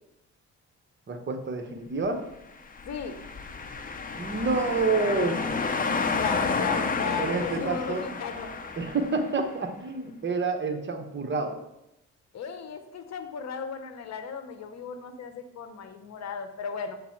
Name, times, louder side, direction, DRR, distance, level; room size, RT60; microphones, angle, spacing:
voice 1, 1.1-2.2 4.2-5.5 7.2-8.0 8.8-11.6, right 3 dB, 40° right, 5 dB, 1.1 m, -28 dB
sound 1, 2.7-9.4, left 4 dB, 30° left, 0.8 m, -31 dB
voice 2, 2.8-3.2 6.2-8.5 12.3-17.0, left 6 dB, 60° left, 8 dB, 1.0 m, -35 dB
7.3 x 3.9 x 5.9 m, 0.85 s
cardioid pair, 90°, 30 cm